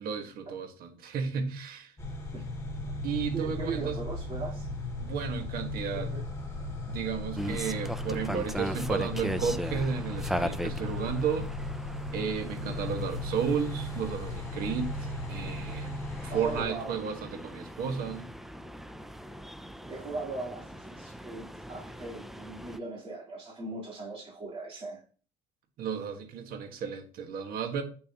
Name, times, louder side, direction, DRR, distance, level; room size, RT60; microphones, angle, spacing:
voice 1, 0.0-1.9 3.0-4.0 5.0-6.1 6.9-11.5 12.1-18.3 25.8-27.8, right 6 dB, 55° right, 1.6 m, -33 dB
sound 1, 2.0-16.6, left 2 dB, 15° left, 2.5 m, -36 dB
voice 2, 3.3-4.7 5.9-6.2 12.4-12.8 16.3-17.0 19.9-25.0, right 3 dB, 35° right, 3.7 m, -39 dB
sound 2, 7.3-22.8, equal, ahead, 0.4 m, -39 dB
8.6 x 7.0 x 3.0 m
cardioid pair, 135°, 18 cm